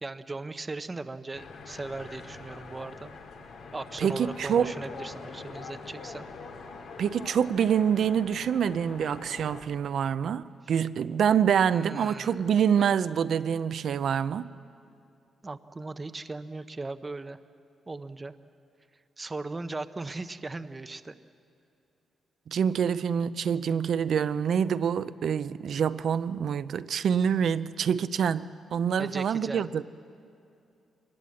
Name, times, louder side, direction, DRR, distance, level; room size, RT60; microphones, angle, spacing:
voice 1, 0.0-3.1 3.7-6.2 11.7-12.5 15.4-17.4 17.9-18.3 19.2-21.1 29.0-29.7, right 3 dB, 20° right, 0.7 m, -38 dB
sound 1, 1.3-9.6, left 4 dB, 80° left, 2.5 m, -44 dB
voice 2, 4.0-4.7 7.0-14.5 22.5-29.8, right 8 dB, 65° right, 0.6 m, -26 dB
24.5 x 20.5 x 7.7 m
cardioid pair, 120°, 0 cm